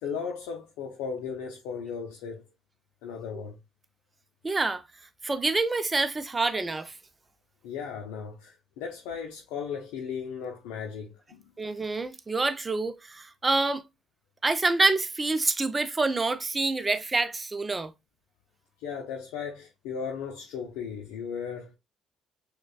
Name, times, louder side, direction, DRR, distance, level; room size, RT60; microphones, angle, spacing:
voice 1, 0.0-2.4 3.0-3.6 7.6-11.5 18.8-21.8, left 6 dB, 80° left, 0.5 m, -36 dB
voice 2, 4.4-4.8 5.2-6.9 11.6-13.8 14.4-17.9, right 3 dB, 25° right, 0.6 m, -27 dB
6.2 x 2.3 x 2.3 m
hypercardioid pair, 60°, 0 cm